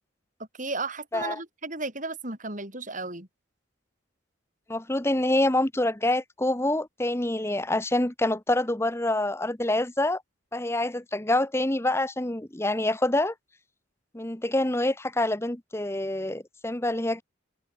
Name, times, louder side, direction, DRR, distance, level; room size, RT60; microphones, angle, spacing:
voice 1, 0.6-3.3, right 3 dB, 40° right, 6.5 m, -34 dB
voice 2, 4.7-10.2 10.5-13.3 14.1-17.2, left 1 dB, 10° left, 0.9 m, -26 dB
head